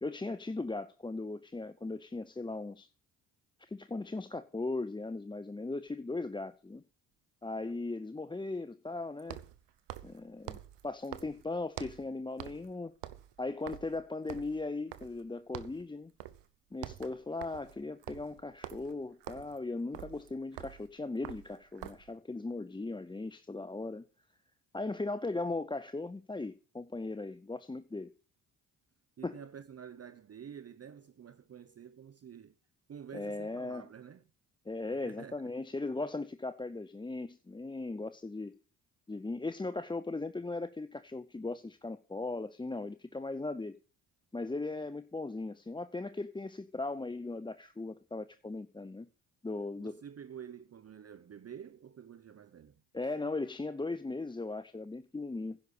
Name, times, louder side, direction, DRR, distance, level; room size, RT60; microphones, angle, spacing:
voice 1, 0.0-2.9 3.7-6.8 7.4-9.4 10.0-10.6 10.8-12.9 13.4-16.1 16.7-24.1 24.7-28.1 29.2-29.4 33.1-33.9 34.7-38.6 39.1-43.8 44.3-49.1 49.4-50.0 52.9-55.6, left 3 dB, 10° left, 0.6 m, -38 dB
sound 1, 5.9-6.0 9.2-12.1 12.4-12.7 13.0-15.3 15.5-15.8 16.2-16.5 16.7-22.1, right 13 dB, 60° right, 1.1 m, -47 dB
voice 2, 29.2-32.6 32.9-34.2 35.0-35.5 49.8-52.7, right 8 dB, 30° right, 0.7 m, -49 dB
10.5 x 6.4 x 8.5 m
hypercardioid pair, 45°, 47 cm